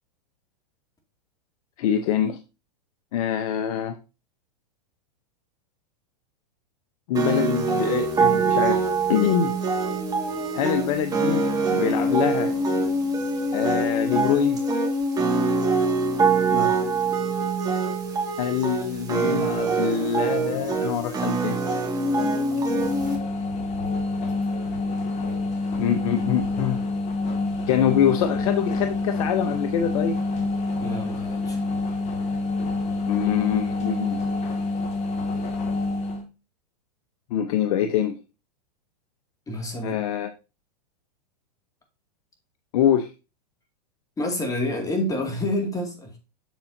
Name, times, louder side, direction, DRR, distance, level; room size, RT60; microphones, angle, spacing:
voice 1, 1.8-2.4 3.1-4.0 7.1-8.8 9.1-9.5 10.5-12.5 13.5-14.6 18.4-21.6 25.8-26.8 27.7-30.2 33.1-34.2 37.3-38.2 39.8-40.3 42.7-43.1, left 10 dB, 60° left, 0.8 m, -24 dB
sound 1, 7.2-23.2, right 3 dB, 20° right, 1.9 m, -24 dB
voice 2, 16.5-16.8 30.8-31.6 39.5-40.0 44.2-46.2, left 1 dB, 15° left, 2.2 m, -28 dB
sound 2, 22.7-36.2, left 2 dB, 35° left, 1.9 m, -27 dB
7.3 x 6.9 x 2.7 m
hypercardioid pair, 115°, 21 cm